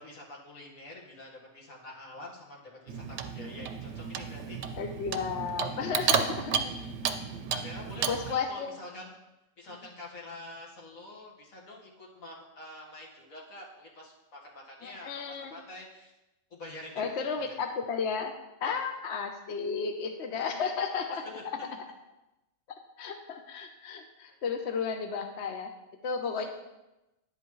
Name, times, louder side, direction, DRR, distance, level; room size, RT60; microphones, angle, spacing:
voice 1, 0.0-4.6 5.7-5.8 6.6-6.9 7.5-9.1 9.6-16.1 16.5-17.0 17.3-17.4 18.6-18.8 20.3-20.4 21.2-21.7 24.3-24.4 26.2-26.5, left 1 dB, 85° left, -3 dB, 2.1 m, -46 dB
Clock, 2.9-8.4, right 7 dB, 65° right, 0.8 m, -32 dB
voice 2, 4.8-6.7 8.1-8.8 14.8-15.5 17.0-18.3 18.6-21.8 23.0-25.7 26.0-26.5, left 5 dB, 60° left, 5 dB, 0.9 m, -33 dB
10.0 x 7.8 x 3.1 m, 0.98 s
omnidirectional pair, 1.4 m